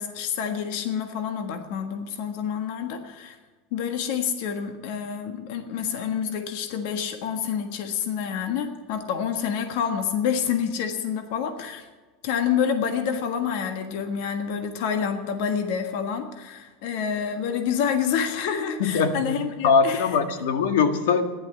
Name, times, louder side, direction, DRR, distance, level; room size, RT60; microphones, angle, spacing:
voice 1, 0.0-3.4 3.7-11.9 12.2-20.2, left 7 dB, 55° left, 6 dB, 1.5 m, -28 dB
voice 2, 18.8-19.4 19.6-21.3, left 5 dB, 90° left, 7 dB, 1.8 m, -21 dB
15.0 x 11.0 x 8.1 m, 1.3 s
supercardioid pair, 170°, 0 cm